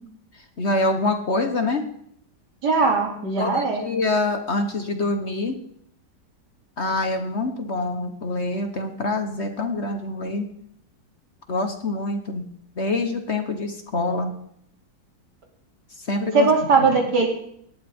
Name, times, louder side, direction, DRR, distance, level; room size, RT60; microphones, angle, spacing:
voice 1, 0.6-1.8 3.4-5.5 6.8-10.5 11.5-12.5 12.8-14.3 16.1-16.5, left 2 dB, 45° left, 6 dB, 1.2 m, -25 dB
voice 2, 2.6-3.8 16.3-17.3, right 4 dB, 70° right, 0 dB, 3.3 m, -19 dB
18.5 x 11.0 x 3.5 m, 0.70 s
omnidirectional pair, 1.8 m